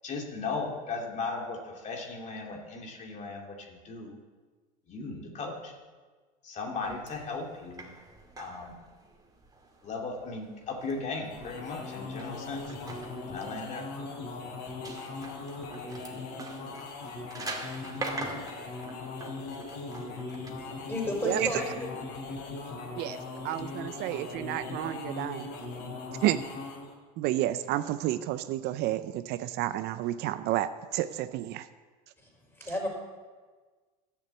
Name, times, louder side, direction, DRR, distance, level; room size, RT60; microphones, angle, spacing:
voice 1, 0.0-4.2 4.9-5.7 6.4-7.9 8.4-8.8 9.8-12.8 13.3-13.9, left 3 dB, 35° left, 0 dB, 2.6 m, -37 dB
sound 1, 6.8-20.5, right 2 dB, 20° right, 2.3 m, -44 dB
sound 2, 11.1-27.0, left 3 dB, 60° left, 3.2 m, -39 dB
voice 2, 20.3-22.0 22.6-22.7 32.6-32.9, left 1 dB, 10° left, 0 dB, 4.6 m, -33 dB
voice 3, 23.4-25.5 26.2-26.4 27.2-31.7, right 14 dB, 55° right, 12 dB, 0.6 m, -30 dB
12.0 x 6.9 x 8.2 m, 1.4 s
supercardioid pair, 105°, 20 cm